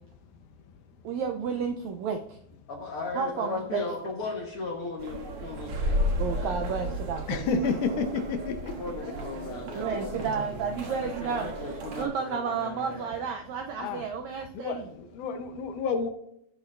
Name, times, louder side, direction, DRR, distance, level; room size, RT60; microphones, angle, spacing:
voice 1, 1.0-2.4 3.1-3.8 6.2-7.5 9.7-14.8, right 6 dB, 80° right, 4 dB, 1.6 m, -32 dB
voice 2, 2.7-7.0 8.8-10.3 10.9-13.3, left 3 dB, 60° left, 1 dB, 1.6 m, -37 dB
sound 1, 5.0-12.1, equal, 55° right, 2.0 m, -33 dB
voice 3, 7.3-8.7 13.8-14.1 14.5-16.1, left 4 dB, 75° left, 7 dB, 2.2 m, -30 dB
17.5 x 6.3 x 2.5 m, 0.77 s
omnidirectional pair, 3.8 m